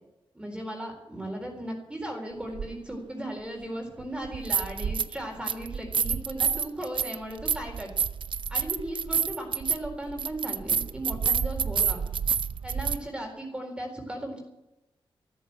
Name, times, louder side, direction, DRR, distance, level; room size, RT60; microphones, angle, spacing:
voice 1, 0.3-7.9 8.5-12.0 12.6-14.4, right 1 dB, 10° right, 1 dB, 4.2 m, -36 dB
sound 1, 2.6-2.7 4.2-5.2 5.5-13.0, right 7 dB, 60° right, 0.6 m, -28 dB
14.0 x 13.5 x 7.6 m, 0.94 s
wide cardioid pair, 130°, 10 cm